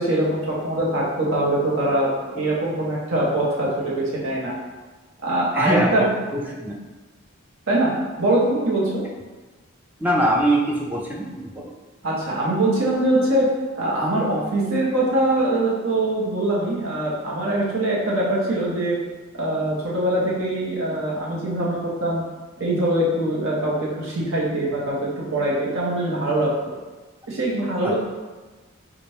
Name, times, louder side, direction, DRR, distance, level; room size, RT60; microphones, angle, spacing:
voice 1, 0.0-4.5 5.2-6.1 7.7-9.0 12.0-18.9 19.3-22.2 22.6-26.5 27.3-27.9, right 1 dB, 65° right, -5 dB, 1.1 m, -23 dB
voice 2, 5.5-6.0 6.3-6.7 10.0-11.7 27.8-27.9, right 1 dB, 10° right, -2 dB, 0.4 m, -22 dB
4.1 x 2.5 x 3.3 m, 1.3 s
head